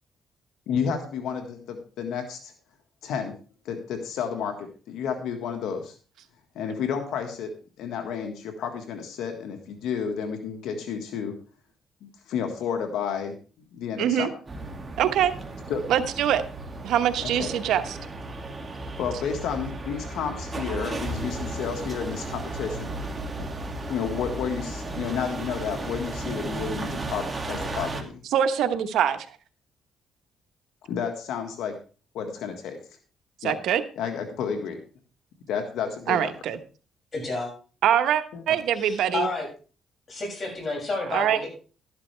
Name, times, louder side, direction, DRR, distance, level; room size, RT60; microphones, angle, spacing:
voice 1, 0.7-2.5 3.0-3.4 3.6-5.9 6.5-7.5 7.8-11.3 12.3-13.4 13.7-14.3 15.7-15.8 17.2-17.5 19.0-23.0 23.9-28.2 30.8-31.7 32.1-32.8 33.4-33.6 34.0-34.8 35.5-36.3 38.3-38.4, left 7 dB, 85° left, 6 dB, 1.6 m, -31 dB
voice 2, 14.0-14.3 15.0-15.3 15.9-16.4 16.8-18.0 28.3-29.3 33.4-33.8 36.1-36.6 37.8-39.3 41.1-41.4, right 10 dB, 80° right, 9 dB, 1.1 m, -23 dB
sound 1, 14.5-28.0, right 2 dB, 25° right, 2.2 m, -34 dB
voice 3, 37.1-37.5 38.8-39.5 40.1-41.5, left 3 dB, 40° left, 1 dB, 6.6 m, -30 dB
12.5 x 11.0 x 3.3 m, 0.37 s
cardioid pair, 90°, 0 cm